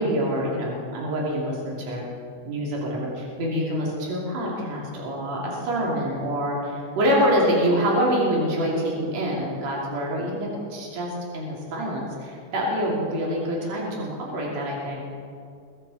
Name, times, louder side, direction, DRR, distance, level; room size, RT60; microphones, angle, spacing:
voice 1, 0.0-2.1 2.4-15.1, equal, 60° right, -3 dB, 3.9 m, -26 dB
22.0 x 12.5 x 4.2 m, 2.4 s
omnidirectional pair, 3.4 m